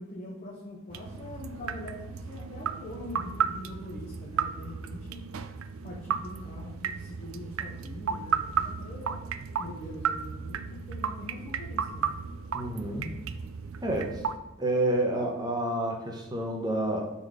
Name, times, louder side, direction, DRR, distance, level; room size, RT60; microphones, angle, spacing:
voice 1, 0.0-5.3 5.8-9.2 9.6-12.1, left 1 dB, 35° left, -3 dB, 0.9 m, -43 dB
sound 1, 0.9-14.4, right 7 dB, 90° right, 0.4 m, -34 dB
voice 2, 12.5-13.2 13.8-14.2 14.6-17.1, right 1 dB, 20° right, 1 dB, 1.0 m, -29 dB
5.0 x 4.1 x 4.8 m, 1.1 s
head